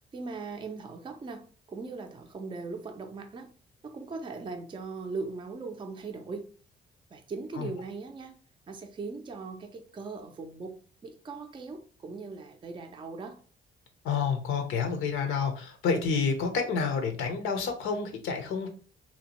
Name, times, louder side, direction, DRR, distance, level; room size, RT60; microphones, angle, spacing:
voice 1, 0.1-3.5 3.8-6.5 7.1-8.4 8.7-13.4, right 4 dB, 25° right, 0.4 m, -39 dB
voice 2, 14.0-18.7, left 5 dB, 85° left, 0.6 m, -29 dB
2.7 x 2.1 x 2.9 m
cardioid pair, 90°, 20 cm